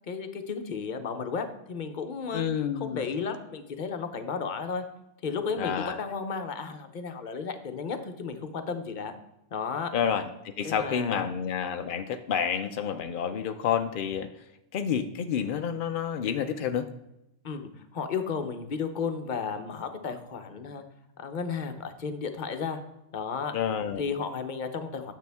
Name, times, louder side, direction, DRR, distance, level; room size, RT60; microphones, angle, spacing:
voice 1, 0.1-2.4 2.7-4.8 5.2-9.1 9.5-9.9 10.6-11.3 17.4-20.8 21.2-22.8 23.1-23.6 24.0-25.1, left 5 dB, 45° left, 7 dB, 0.7 m, -33 dB
voice 2, 2.3-3.0 5.6-6.0 9.9-14.3 14.7-16.9 23.5-24.0, left 8 dB, 85° left, 8 dB, 0.4 m, -29 dB
9.3 x 7.0 x 3.4 m, 0.87 s
omnidirectional pair, 1.5 m